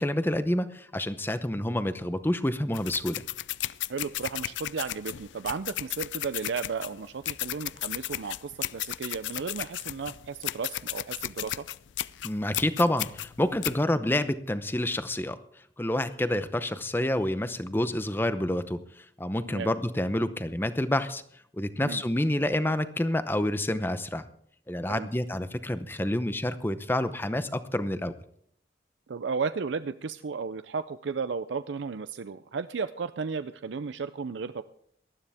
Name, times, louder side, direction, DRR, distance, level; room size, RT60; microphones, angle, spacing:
voice 1, 0.0-3.2 12.2-15.4 15.8-21.2 21.5-24.2 24.7-28.1, left 1 dB, 10° left, 11 dB, 0.7 m, -28 dB
sound 1, 2.7-13.8, left 14 dB, 90° left, 0.4 m, -35 dB
voice 2, 3.9-11.7 19.4-19.7 21.8-22.0 24.9-25.1 29.1-34.6, right 5 dB, 80° right, 12 dB, 0.5 m, -34 dB
18.5 x 12.5 x 3.5 m, 0.65 s
head